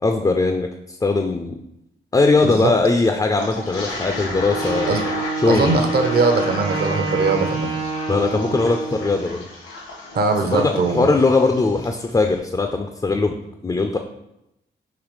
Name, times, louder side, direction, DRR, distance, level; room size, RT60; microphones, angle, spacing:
voice 1, 0.0-1.6 2.1-4.9 5.4-5.8 8.1-9.5 10.4-13.4 13.6-14.0, left 3 dB, 20° left, 5 dB, 0.3 m, -20 dB
Toilet flush, 3.4-12.0, left 2 dB, 85° left, 1.1 m, -33 dB
Wind instrument woodwind instrument, 4.4-9.3, right 3 dB, 85° right, 1.0 m, -27 dB
voice 2, 5.5-7.7 10.1-11.1, right 3 dB, 50° right, 5 dB, 0.6 m, -20 dB
3.9 x 2.8 x 3.1 m, 0.84 s
supercardioid pair, 50°, 21 cm